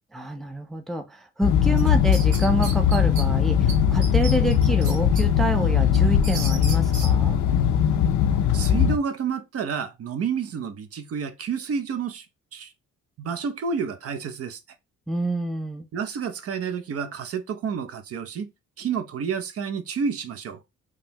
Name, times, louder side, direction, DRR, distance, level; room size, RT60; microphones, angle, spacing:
voice 1, 0.1-7.4 15.1-15.9, right 1 dB, ahead, 0.4 m, -28 dB
sound 1, 1.4-9.0, left 8 dB, 70° left, 0.5 m, -20 dB
sound 2, 1.8-3.2 3.7-3.8 4.0-5.2 5.6-7.1, right 3 dB, 85° right, 1.2 m, -35 dB
voice 2, 8.5-12.3 12.5-12.7 13.2-14.6 15.9-18.5 18.8-20.6, right 6 dB, 50° right, 0.6 m, -29 dB
3.6 x 2.1 x 2.8 m
cardioid pair, 90°, 30 cm